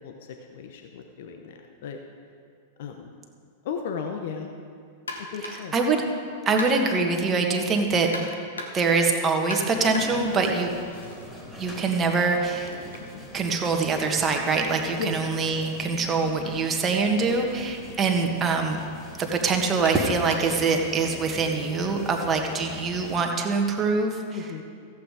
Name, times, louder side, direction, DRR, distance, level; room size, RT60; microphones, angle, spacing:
voice 1, 0.5-2.0 2.8-3.1 3.6-4.5 5.3-5.7 13.1-13.2 15.0-15.2 24.3-24.6, left 6 dB, 65° left, 4 dB, 0.9 m, -35 dB
sound 1, 5.1-5.8 6.6-7.1 8.1-9.0 9.5-11.3 11.6-15.5 16.5-16.7 17.2-17.3 18.2-18.3 19.8-20.7, left 2 dB, 90° left, 1.4 m, -40 dB
voice 2, 6.4-8.3 8.7-10.7 11.5-12.7 13.3-18.8 19.2-24.2, right 4 dB, 25° right, 3 dB, 1.5 m, -24 dB
sound 2, 9.7-23.2, left 1 dB, 10° left, 3.0 m, -43 dB
14.0 x 8.3 x 4.9 m, 2.3 s
hypercardioid pair, 100°, 0 cm